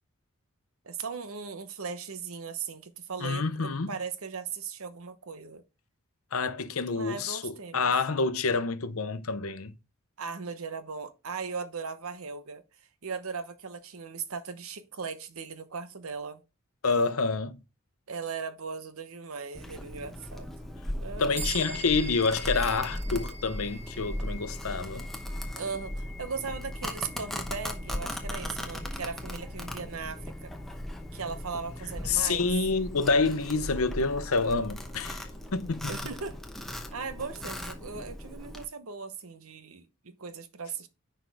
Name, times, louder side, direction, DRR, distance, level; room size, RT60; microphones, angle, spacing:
voice 1, 0.8-5.6 6.9-7.8 10.2-12.6 13.0-16.4 18.1-20.5 21.0-21.5 25.5-30.5 31.1-32.5 35.9-36.4 36.9-40.9, right 5 dB, 80° right, 0.9 m, -38 dB
voice 2, 3.2-3.9 6.3-9.7 16.8-17.6 21.2-25.1 32.1-36.0, left 4 dB, 80° left, 0.8 m, -28 dB
Domestic sounds home sounds, 19.5-38.6, left 1 dB, ahead, 0.8 m, -38 dB
sound 1, 21.3-31.1, right 2 dB, 55° right, 2.4 m, -45 dB
sound 2, 32.8-38.2, left 2 dB, 45° left, 0.9 m, -53 dB
10.0 x 4.6 x 3.5 m
head